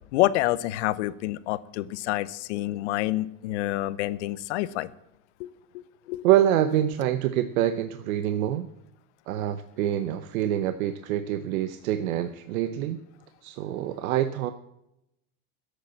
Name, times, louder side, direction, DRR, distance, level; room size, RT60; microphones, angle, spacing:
voice 1, 0.1-4.9 5.4-6.2, left 16 dB, 55° left, 17 dB, 0.7 m, -28 dB
voice 2, 6.2-8.7 9.3-13.0 13.4-14.5, right 11 dB, 75° right, 11 dB, 0.9 m, -26 dB
12.0 x 8.3 x 8.5 m, 0.84 s
supercardioid pair, 180°, 42 cm